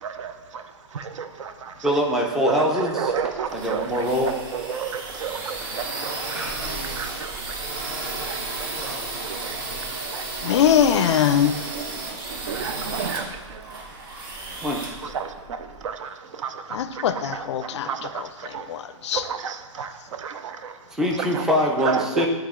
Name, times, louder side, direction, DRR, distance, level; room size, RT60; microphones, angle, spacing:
voice 1, 0.0-1.9 2.6-7.6 8.2-8.8 9.2-10.6 11.1-11.2 11.7-13.9 15.0-18.8 19.1-20.8 21.2-21.5 21.8-22.3, right 7 dB, 75° right, 10 dB, 0.6 m, -33 dB
voice 2, 1.8-3.1 3.5-4.3 6.3-6.6 8.8-9.0 14.6-14.8 20.9-22.3, equal, 5° right, 0 dB, 0.4 m, -23 dB
sound 1, 3.1-15.8, right 3 dB, 45° right, 1.0 m, -33 dB
voice 3, 10.4-11.6 16.7-19.3, left 9 dB, 65° left, 12 dB, 0.4 m, -22 dB
9.6 x 3.4 x 3.6 m, 1.2 s
hypercardioid pair, 165°, 16 cm